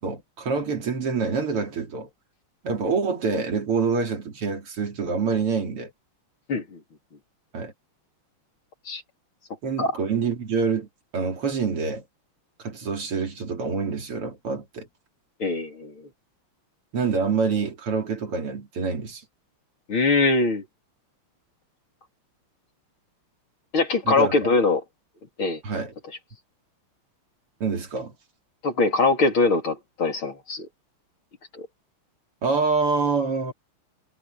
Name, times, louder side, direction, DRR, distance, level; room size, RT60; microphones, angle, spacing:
voice 1, 0.0-2.1 2.6-5.9 7.5-7.7 9.6-10.9 11.1-12.0 12.6-14.9 16.9-19.2 24.1-24.5 25.6-25.9 27.6-28.1 32.4-33.5, right 5 dB, 90° right, 4.0 m, -26 dB
voice 2, 6.5-6.8 8.9-9.0 9.8-9.9 15.4-15.9 19.9-20.6 23.7-24.8 25.4-25.6 28.6-30.7 31.5-31.7, left 3 dB, 65° left, 4.5 m, -22 dB
omnidirectional pair, 2.4 m